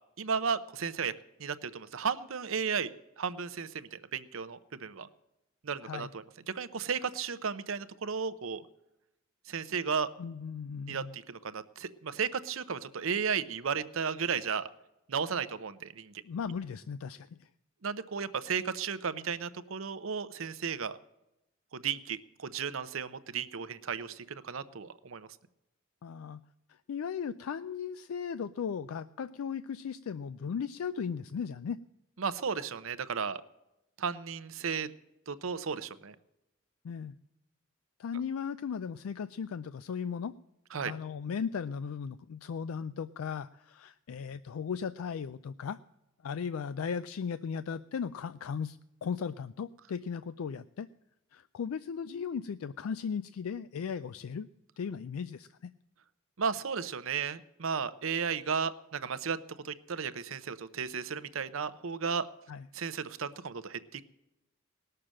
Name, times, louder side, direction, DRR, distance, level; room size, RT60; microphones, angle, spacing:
voice 1, 0.2-1.1 1.4-2.9 3.2-5.1 5.6-6.2 6.5-8.7 9.5-10.1 10.9-14.7 15.1-16.1 17.8-21.0 21.7-25.3 32.2-33.4 34.0-34.9 35.3-36.1 40.7-40.9 56.4-59.4 59.6-62.3 62.7-64.0, right 6 dB, 70° right, 14 dB, 0.7 m, -34 dB
voice 2, 10.2-11.1 16.2-17.5 26.0-26.4 26.7-31.8 36.8-37.1 38.0-40.3 40.8-45.8 46.2-50.9 51.3-54.5 54.8-55.7 62.5-62.6, left 6 dB, 85° left, 13 dB, 0.4 m, -37 dB
18.5 x 6.7 x 7.5 m, 0.91 s
head